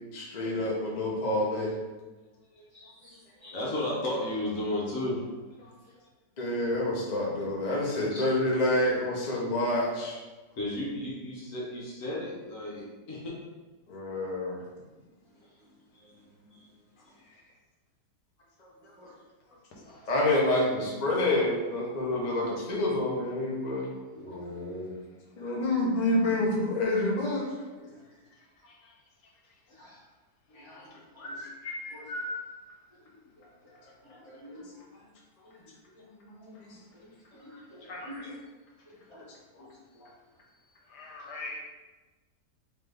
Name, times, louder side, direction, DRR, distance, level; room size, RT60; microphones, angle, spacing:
voice 1, 0.1-1.7 5.6-5.7 6.4-10.2 13.9-14.6 20.1-23.9 25.4-27.5, left 1 dB, 40° left, -4 dB, 0.6 m, -27 dB
voice 2, 2.5-3.6 8.1-8.2 19.0-19.1 24.3-24.4 27.8-27.9 29.8-29.9 30.5-31.4 31.9-32.0 34.2-34.8 36.4-36.7 37.4-38.3 39.1-39.2 39.6-39.7, left 2 dB, 20° right, -9 dB, 0.9 m, -49 dB
voice 3, 3.5-5.3 5.7-5.8 10.5-13.3 15.9-16.1 16.5-16.7 17.1-17.4 19.5-19.6 19.9-20.0 22.4-22.5 24.2-25.2 27.8-27.9 29.7-30.1 30.5-30.9 31.2-31.4 32.0-32.1 32.9-33.0 33.4-34.8 35.4-35.6 35.9-36.0 36.4-38.3 39.2-39.3 39.6-39.7 39.9-40.1, left 1 dB, 55° left, -4 dB, 1.2 m, -37 dB
voice 4, 31.2-32.4 37.9-38.3 40.9-41.6, left 1 dB, 80° left, -2 dB, 1.4 m, -39 dB
3.8 x 3.2 x 3.3 m, 1.2 s
omnidirectional pair, 1.7 m